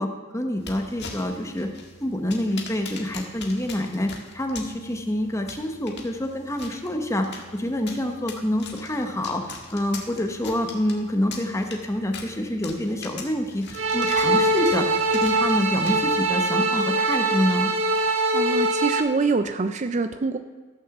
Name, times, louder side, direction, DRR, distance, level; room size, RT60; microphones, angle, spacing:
voice 1, 0.0-1.7 2.0-17.7, left 1 dB, 15° left, 4 dB, 1.1 m, -27 dB
sound 1, 0.6-16.3, left 4 dB, 55° left, 1.7 m, -42 dB
sound 2, 13.7-19.0, right 2 dB, 65° right, 1.2 m, -22 dB
voice 2, 18.3-20.4, right 4 dB, 35° right, 9 dB, 0.4 m, -25 dB
15.0 x 6.3 x 7.1 m, 1.3 s
head